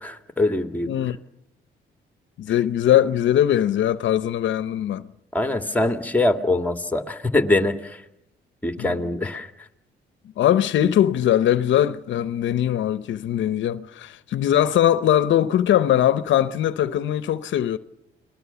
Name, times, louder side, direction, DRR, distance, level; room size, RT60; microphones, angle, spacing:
voice 1, 0.0-0.9 5.3-8.0 8.6-9.5, left 2 dB, 10° left, 2.1 m, -23 dB
voice 2, 0.8-1.2 2.4-5.1 8.8-9.0 10.4-17.8, left 11 dB, 70° left, 0.8 m, -21 dB
30.0 x 20.0 x 7.0 m
cardioid pair, 90°, 20 cm